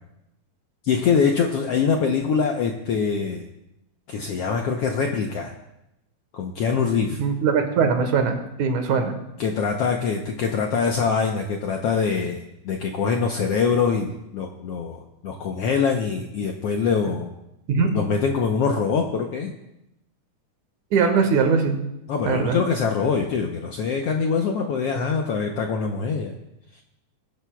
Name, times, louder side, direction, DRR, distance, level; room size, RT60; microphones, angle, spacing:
voice 1, 0.8-3.4 4.1-5.5 6.3-7.2 9.4-17.3 17.9-19.5 22.1-26.3, left 5 dB, 75° left, 2 dB, 1.4 m, -24 dB
voice 2, 7.2-9.1 17.7-17.9 20.9-21.8 22.2-22.6, right 5 dB, 70° right, 5 dB, 2.6 m, -21 dB
22.0 x 11.0 x 2.3 m, 0.88 s
omnidirectional pair, 3.7 m